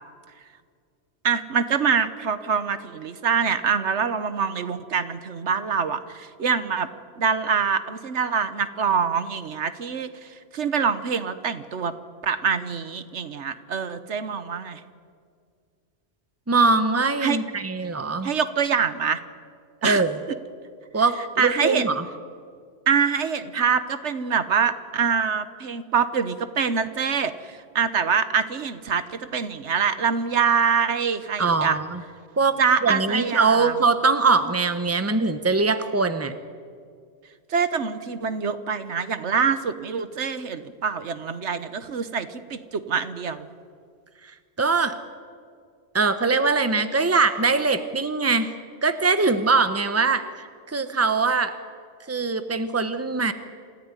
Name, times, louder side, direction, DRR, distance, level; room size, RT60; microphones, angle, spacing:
voice 1, 1.2-6.9 7.2-11.9 12.2-14.8 17.2-17.4 18.2-19.2 19.8-20.0 21.4-21.9 22.9-31.8 32.6-33.7 37.5-43.5, right 6 dB, 75° right, 12 dB, 1.4 m, -25 dB
voice 2, 16.5-18.3 19.8-20.2 20.9-22.0 31.4-32.0 32.4-36.3 44.6-45.0 45.9-48.5 48.8-51.6 52.1-53.3, right 4 dB, 15° right, 10 dB, 1.0 m, -22 dB
27.5 x 15.0 x 9.7 m, 2.1 s
omnidirectional pair, 1.2 m